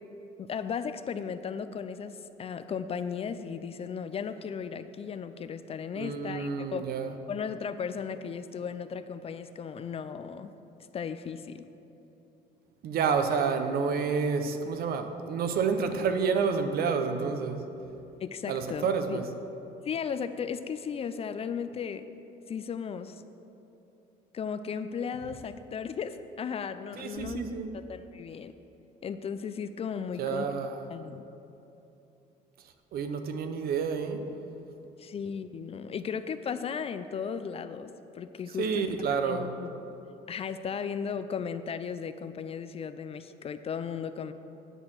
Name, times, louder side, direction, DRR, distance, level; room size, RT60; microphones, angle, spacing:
voice 1, 0.4-6.9 7.3-10.5 10.9-11.6 18.2-19.2 19.8-22.1 22.5-23.2 24.3-28.5 29.0-30.6 30.9-31.2 35.0-38.8 39.1-39.7 40.3-44.3, left 6 dB, 35° left, 11 dB, 0.4 m, -36 dB
voice 2, 5.9-7.1 12.8-17.7 18.5-19.3 27.0-27.7 30.2-30.8 32.9-34.2 38.6-39.5, right 5 dB, 65° right, 7 dB, 0.8 m, -29 dB
10.0 x 4.4 x 7.2 m, 2.9 s
cardioid pair, 110°, 17 cm